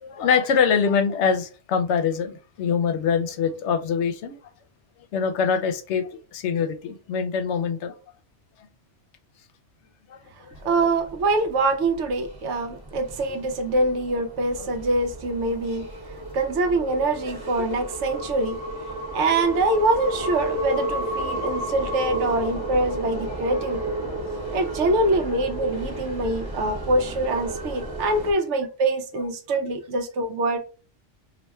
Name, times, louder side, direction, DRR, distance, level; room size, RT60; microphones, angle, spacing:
voice 1, 0.0-4.4 5.1-8.0 10.1-10.2 10.5-10.7, left 6 dB, 75° left, 0.9 m, -24 dB
sound 1, 10.5-28.3, right 1 dB, 20° right, 1.0 m, -33 dB
voice 2, 10.6-15.8 16.3-18.6 19.1-23.8 24.5-30.6, right 2 dB, 80° right, 1.0 m, -24 dB
2.7 x 2.2 x 4.1 m
omnidirectional pair, 1.2 m